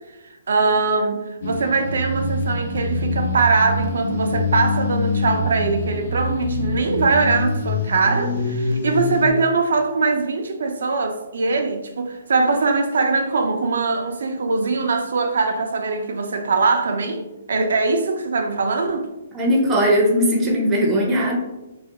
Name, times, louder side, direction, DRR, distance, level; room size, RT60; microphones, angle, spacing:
voice 1, 0.5-19.1, right 3 dB, 80° right, 0.3 m, -21 dB
sound 1, 1.4-9.3, left 2 dB, 55° left, 0.3 m, -25 dB
voice 2, 19.3-21.4, equal, 10° right, 0.4 m, -18 dB
2.3 x 2.1 x 2.7 m
hypercardioid pair, 170°, 0 cm